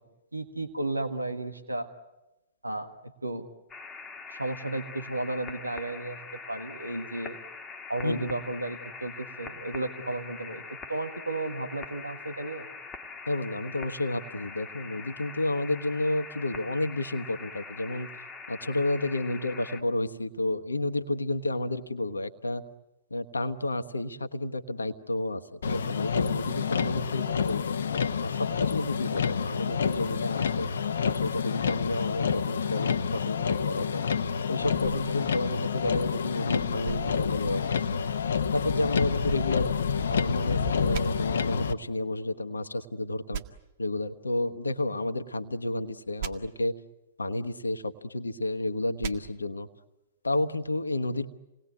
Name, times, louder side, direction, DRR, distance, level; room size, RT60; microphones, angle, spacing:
voice 1, 0.3-1.9 2.6-2.9 3.2-3.5 4.3-7.4 7.9-12.7, right 2 dB, 85° right, 7 dB, 1.7 m, -33 dB
sound 1, 3.7-19.8, left 4 dB, 15° left, 2.0 m, -43 dB
voice 2, 13.3-18.1 18.5-22.6 23.1-27.9 28.2-30.7 31.0-34.0 34.5-37.8 38.5-39.7 40.1-43.4 43.8-46.8 47.2-49.7 50.2-51.3, left 2 dB, 80° left, 8 dB, 1.2 m, -31 dB
Motor vehicle (road), 25.6-41.7, left 6 dB, 60° left, 1.0 m, -28 dB
sound 2, 40.9-41.0 43.3-43.4 46.2-46.3 49.0-49.1, right 8 dB, 45° right, 1.8 m, -39 dB
28.5 x 19.5 x 9.4 m, 1.0 s
figure-of-eight pair, 110°, 0 cm